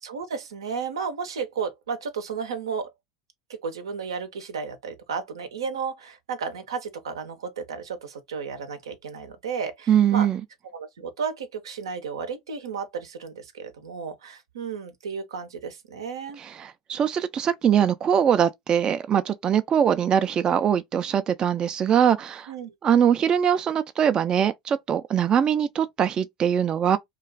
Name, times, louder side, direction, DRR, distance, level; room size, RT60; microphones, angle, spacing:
voice 1, 0.0-2.9 3.5-10.3 10.7-16.4 22.5-22.7, right 6 dB, 85° right, 0.6 m, -33 dB
voice 2, 9.9-10.4 16.4-22.5 22.8-27.0, right 8 dB, 35° right, 0.3 m, -22 dB
2.4 x 2.3 x 3.2 m
hypercardioid pair, 90°, 2 cm